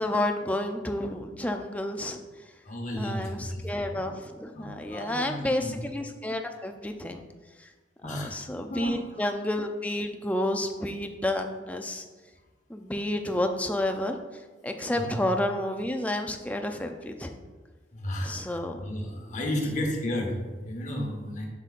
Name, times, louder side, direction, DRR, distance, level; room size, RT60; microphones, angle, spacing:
voice 1, 0.0-2.2 3.0-7.2 8.0-12.0 12.7-14.2 14.6-17.4 18.2-18.8, left 1 dB, 5° left, 4 dB, 0.4 m, -30 dB
voice 2, 2.6-4.1 4.5-5.7 8.0-8.4 8.7-9.2 14.8-15.1 17.9-21.5, left 1 dB, 40° left, 1 dB, 1.1 m, -33 dB
7.5 x 6.8 x 2.5 m, 1.3 s
head